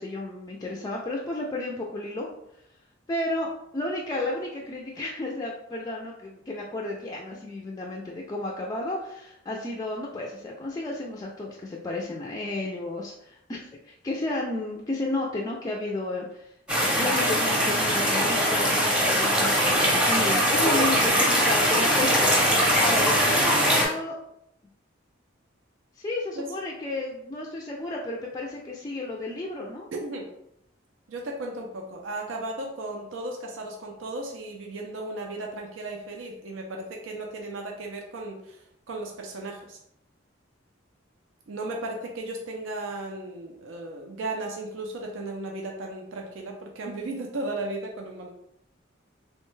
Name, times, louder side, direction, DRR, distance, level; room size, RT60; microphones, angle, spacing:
voice 1, 0.0-2.3 3.1-16.5 16.9-22.3 22.8-24.2 26.0-29.9, left 2 dB, 20° left, -2 dB, 0.3 m, -32 dB
sound 1, 16.7-23.9, equal, 5° right, 0.7 m, -22 dB
voice 2, 29.9-30.3 31.1-39.8 41.5-48.3, right 2 dB, 80° right, 1 dB, 0.5 m, -35 dB
3.1 x 2.2 x 3.1 m, 0.75 s
head